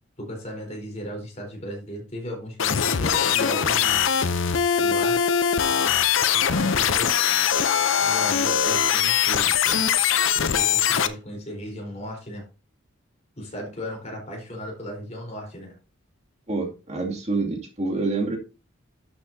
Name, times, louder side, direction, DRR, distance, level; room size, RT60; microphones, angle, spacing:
voice 1, 0.2-4.0 4.8-5.4 6.5-7.2 8.0-10.0 10.3-12.4 13.4-15.8, equal, 35° left, 1 dB, 4.0 m, -36 dB
sound 1, 2.6-11.1, left 8 dB, 70° left, 0.7 m, -21 dB
voice 2, 16.5-18.4, right 3 dB, 35° right, 0 dB, 2.5 m, -27 dB
12.0 x 6.6 x 2.7 m, 0.32 s
head